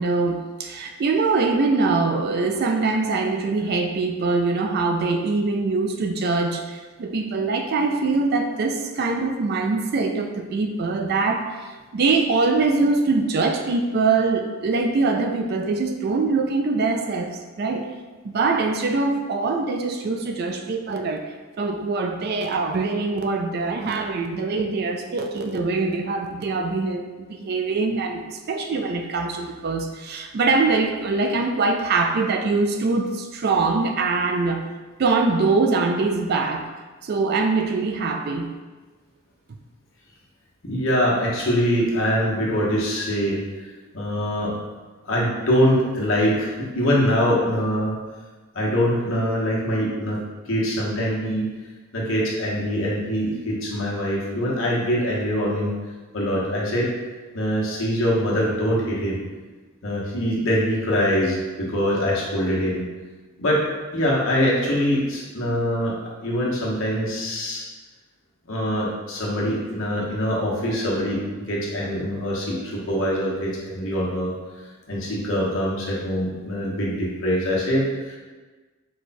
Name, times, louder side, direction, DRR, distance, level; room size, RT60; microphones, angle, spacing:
voice 1, 0.0-17.9 18.2-34.6 35.0-36.7 37.0-38.5, right 3 dB, 50° right, 4 dB, 0.3 m, -23 dB
voice 2, 40.6-44.5 45.0-48.0 48.5-51.5 51.9-55.7 56.1-56.9 57.3-59.2 59.8-62.8 63.4-65.9 66.2-67.6 68.5-71.2 71.5-74.3 74.6-78.2, equal, 70° left, -4 dB, 1.1 m, -23 dB
4.7 x 2.3 x 4.1 m, 1.3 s
head